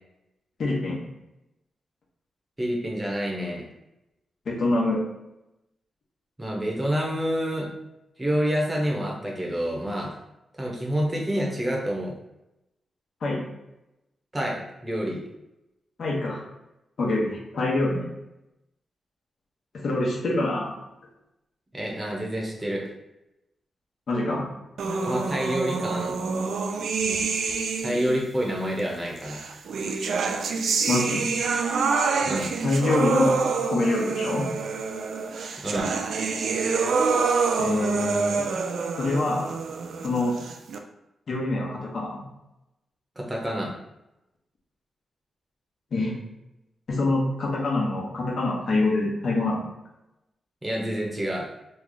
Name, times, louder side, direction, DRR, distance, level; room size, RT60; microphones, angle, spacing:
voice 1, 0.6-1.0 4.5-5.0 13.2-13.5 16.0-16.4 17.0-18.1 19.7-20.7 24.1-24.5 30.9-31.2 32.6-33.4 33.7-34.5 37.6-38.5 39.0-39.5 40.0-40.4 41.3-42.2 45.9-46.1 46.9-49.6, left 2 dB, 60° left, -3 dB, 1.0 m, -25 dB
voice 2, 2.6-3.7 6.4-7.7 8.2-10.1 10.6-12.1 14.3-15.2 21.7-22.9 25.0-26.2 27.0-27.3 27.8-29.4 32.2-32.5 35.6-36.0 43.2-43.7 50.6-51.5, equal, 20° right, -2 dB, 0.9 m, -28 dB
sound 1, 24.8-28.2 29.2-40.8, right 4 dB, 80° right, 0.3 m, -27 dB
3.1 x 2.3 x 3.9 m, 0.91 s
cardioid pair, 85°, 0 cm